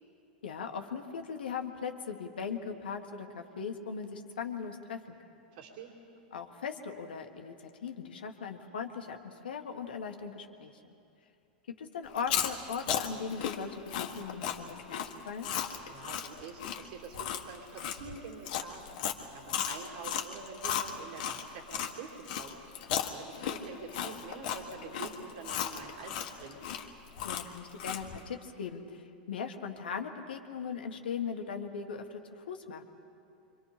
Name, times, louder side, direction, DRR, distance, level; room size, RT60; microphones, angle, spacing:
voice 1, 0.4-5.2 6.3-10.8 11.8-15.5 27.2-32.8, left 6 dB, 85° left, 4 dB, 1.7 m, -39 dB
voice 2, 5.5-6.0 15.9-26.6, right 5 dB, 65° right, 1 dB, 2.6 m, -46 dB
Chewing mastication, 12.1-21.9 22.3-28.2, left 9 dB, 65° left, 1.7 m, -35 dB
27.5 x 24.5 x 5.1 m, 2.6 s
hypercardioid pair, 110°, 5 cm